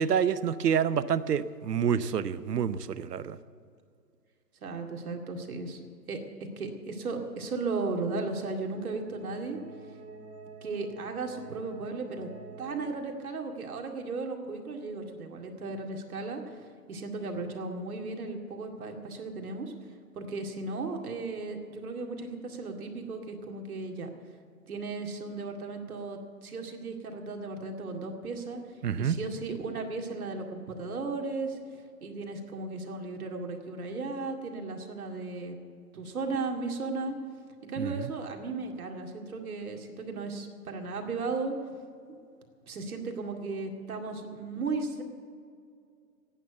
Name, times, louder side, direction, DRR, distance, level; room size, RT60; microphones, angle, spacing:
voice 1, 0.0-3.4 28.8-29.2 37.8-38.1, right 8 dB, 80° right, 15 dB, 0.9 m, -28 dB
voice 2, 4.6-9.6 10.6-12.3 12.6-16.6 16.9-19.7 20.1-24.1 24.7-28.6 29.0-31.6 32.0-35.6 35.9-37.1 37.7-41.6 42.7-45.0, right 3 dB, 65° right, 3 dB, 2.3 m, -35 dB
sound 1, 8.0-12.9, right 4 dB, 10° right, 0.8 m, -49 dB
14.5 x 9.3 x 8.1 m, 2.3 s
hypercardioid pair, 160°, 47 cm